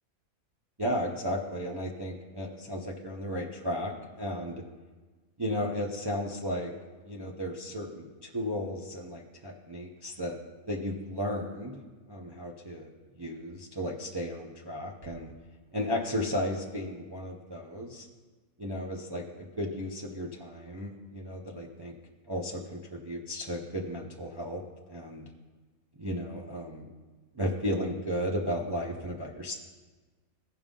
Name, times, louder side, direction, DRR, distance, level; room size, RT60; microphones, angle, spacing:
voice 1, 0.8-4.6 5.4-6.7 7.0-10.4 10.7-11.8 12.1-12.9 13.2-15.3 15.7-18.1 18.6-21.9 22.3-24.6 24.9-25.3 26.0-26.9 27.3-29.5, equal, 30° right, -2 dB, 0.5 m, -34 dB
15.5 x 5.3 x 3.7 m, 1.4 s
omnidirectional pair, 1.5 m